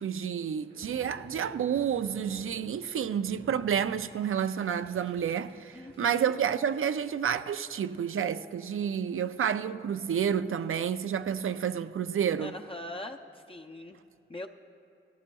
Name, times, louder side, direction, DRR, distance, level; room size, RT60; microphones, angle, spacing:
voice 1, 0.0-12.6, right 8 dB, 85° right, 0.4 m, -30 dB
sound 1, 0.6-11.2, right 2 dB, 55° right, 0.9 m, -54 dB
voice 2, 5.7-6.3 12.4-13.2 13.5-14.0 14.3-14.5, left 2 dB, 25° left, 0.5 m, -41 dB
18.5 x 13.5 x 2.3 m
wide cardioid pair, 90°, 21 cm